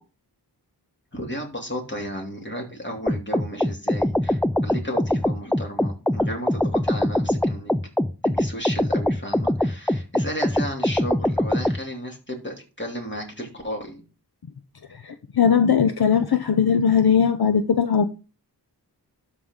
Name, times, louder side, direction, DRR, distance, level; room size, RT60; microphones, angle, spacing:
voice 1, 1.1-7.7 8.2-14.0, equal, 25° left, 2.8 m, -34 dB
sound 1, 3.1-11.8, left 1 dB, 5° left, 0.3 m, -23 dB
voice 2, 15.0-18.1, left 7 dB, 65° left, 0.7 m, -19 dB
12.5 x 4.9 x 3.7 m
wide cardioid pair, 55°, 40 cm